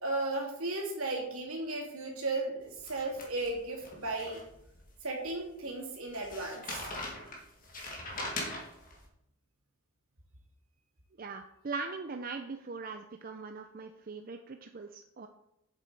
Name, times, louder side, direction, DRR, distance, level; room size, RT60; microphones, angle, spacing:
voice 1, 0.0-4.4 5.0-6.9, right 2 dB, 70° right, -1 dB, 2.8 m, -35 dB
sound 1, 2.8-4.8 5.2-5.3 6.1-9.0, left 2 dB, 40° left, 2.1 m, -41 dB
voice 2, 11.2-15.3, right 4 dB, 40° right, 6 dB, 0.5 m, -40 dB
7.8 x 7.6 x 4.7 m, 0.81 s
head